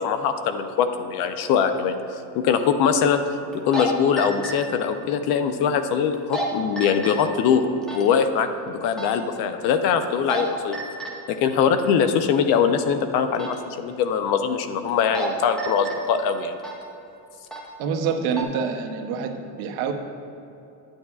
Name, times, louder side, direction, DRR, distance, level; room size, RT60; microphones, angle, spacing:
voice 1, 0.0-3.2 3.5-10.8 11.3-16.6, left 7 dB, 55° left, 9 dB, 0.5 m, -22 dB
sound 1, 1.5-1.6 3.5-3.9 4.2-4.5 6.1-6.4 6.8-7.1 7.8-8.0 8.9-9.2 10.0-10.4 10.7-11.1 13.3-13.5 14.9-15.3 15.6-16.0 16.6-16.8 17.5-17.6 18.1-18.4, right 2 dB, ahead, 0.4 m, -30 dB
voice 2, 17.8-19.9, right 6 dB, 85° right, 5 dB, 0.9 m, -26 dB
9.5 x 8.9 x 2.4 m, 2.8 s
cardioid pair, 175°, 45 cm